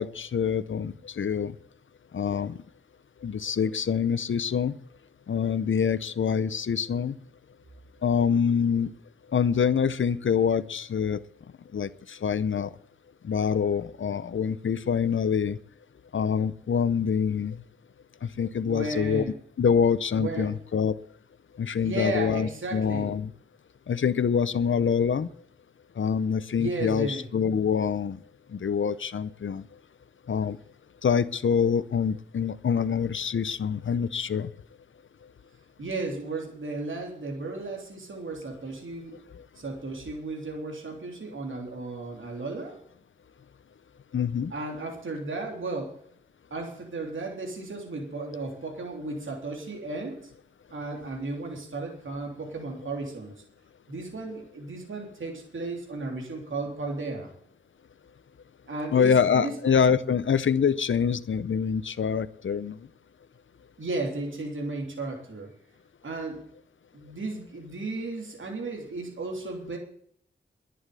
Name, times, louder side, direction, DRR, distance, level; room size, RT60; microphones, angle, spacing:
voice 1, 0.0-1.5 2.1-2.6 3.2-4.7 5.3-7.1 8.0-8.9 9.3-11.2 11.7-12.7 13.2-15.6 16.1-17.6 18.2-19.2 19.6-20.9 21.6-23.3 23.9-25.3 26.0-28.2 28.5-29.6 30.3-30.6 31.0-34.5 44.1-44.5 58.9-62.8, left 7 dB, 90° left, 15 dB, 0.6 m, -25 dB
voice 2, 18.6-19.3 20.2-20.5 21.8-23.1 26.6-27.2 35.8-39.2 39.6-42.8 44.5-46.0 46.5-50.3 50.7-53.3 53.9-57.3 58.7-59.6 63.8-65.5 66.0-66.4 66.9-69.8, right 2 dB, 90° right, 1 dB, 3.3 m, -34 dB
11.5 x 9.6 x 8.3 m, 0.63 s
wide cardioid pair, 55°, 20 cm